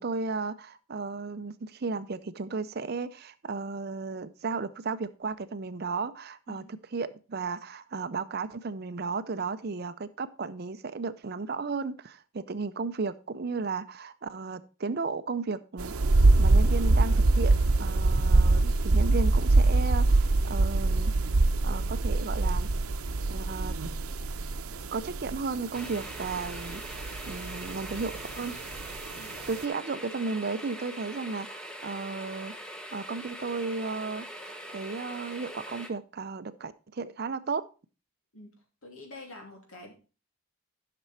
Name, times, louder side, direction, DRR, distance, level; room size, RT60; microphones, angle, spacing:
voice 1, 0.0-15.9 16.4-21.1 21.6-22.7 23.3-23.8 24.9-28.6 29.5-37.6, right 4 dB, 45° right, 13 dB, 0.5 m, -34 dB
sound 1, 15.8-29.6, right 2 dB, 80° right, 0.8 m, -24 dB
Electric Kettle Boiling Water, 25.7-35.9, equal, 5° left, 0.9 m, -42 dB
voice 2, 38.8-39.9, left 2 dB, 75° left, 2 dB, 2.8 m, -46 dB
11.5 x 6.0 x 4.2 m, 0.33 s
head